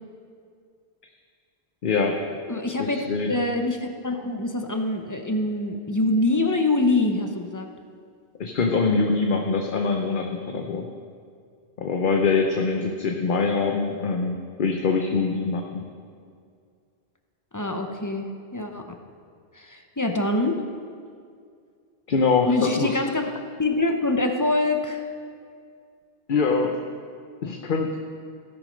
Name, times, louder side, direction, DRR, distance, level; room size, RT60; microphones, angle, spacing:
voice 1, 1.8-2.4 2.8-3.4 8.4-10.9 11.8-15.8 22.1-23.0 26.3-26.7 27.4-27.9, left 4 dB, 55° left, 2 dB, 0.9 m, -24 dB
voice 2, 2.5-7.7 17.5-18.9 19.5-20.6 22.4-23.3 23.6-25.1, left 2 dB, 20° left, 4 dB, 0.7 m, -25 dB
17.0 x 6.2 x 5.2 m, 2.2 s
omnidirectional pair, 1.1 m